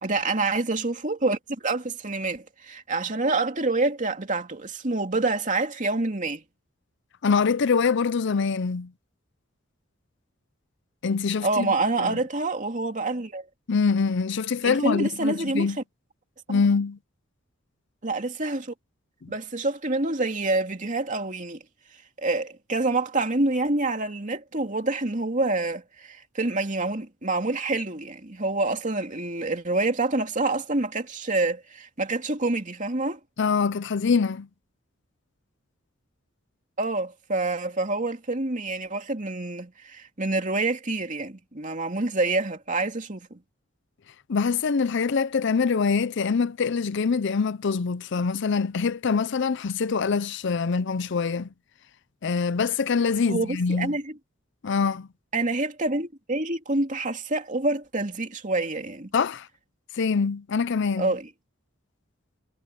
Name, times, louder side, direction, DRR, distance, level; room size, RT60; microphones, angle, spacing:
voice 1, 0.0-6.4 11.4-13.4 14.6-15.7 16.5-16.6 18.0-18.7 19.3-21.6 22.2-33.2 36.8-43.4 53.3-54.1 55.3-59.1 61.0-61.3, right 2 dB, 40° right, 2.6 m, -27 dB
voice 2, 7.2-8.9 11.0-12.2 13.7-15.8 16.5-17.0 19.2-19.3 33.4-34.5 44.3-51.5 52.2-54.0 54.6-55.1 59.1-59.5 59.9-61.1, left 5 dB, 60° left, 0.5 m, -24 dB
head